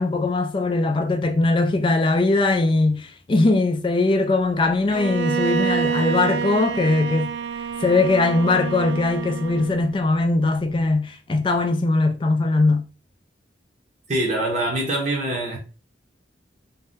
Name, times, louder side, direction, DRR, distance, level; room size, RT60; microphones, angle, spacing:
voice 1, 0.0-7.3 7.8-12.8, left 2 dB, 25° left, 0.3 m, -20 dB
Bowed string instrument, 4.9-9.9, right 6 dB, 70° right, 0.3 m, -27 dB
voice 2, 14.1-15.6, right 1 dB, 40° right, 0.7 m, -24 dB
2.6 x 2.2 x 3.5 m
head